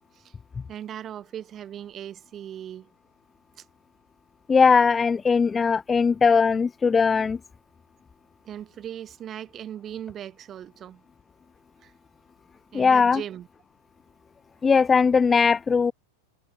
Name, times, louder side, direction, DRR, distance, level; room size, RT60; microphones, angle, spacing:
voice 1, 0.7-2.9 3.6-3.7 8.4-11.0 11.8-11.9 12.7-13.5, right 10 dB, 25° right, 7.4 m, -38 dB
voice 2, 4.5-7.4 12.7-13.2 14.6-15.9, left 5 dB, 15° left, 0.6 m, -19 dB
figure-of-eight pair, 90°, 0 cm